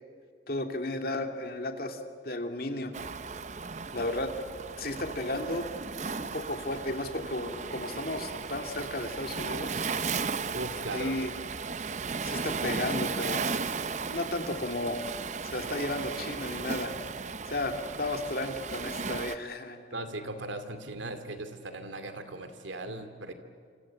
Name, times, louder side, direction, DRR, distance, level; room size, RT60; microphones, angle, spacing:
voice 1, 0.5-2.0 2.2-2.9 3.9-4.3 4.8-5.7 6.2-9.8 10.9-11.3 12.2-13.5 14.1-15.1 15.4-16.9 17.5-19.8, left 2 dB, 50° left, 5 dB, 2.4 m, -33 dB
Waves surf, 2.9-19.4, right 5 dB, 40° right, 0.7 m, -35 dB
voice 2, 10.5-11.2 19.9-23.3, right 2 dB, 85° right, 8 dB, 2.6 m, -38 dB
28.0 x 26.5 x 7.7 m, 2.2 s
head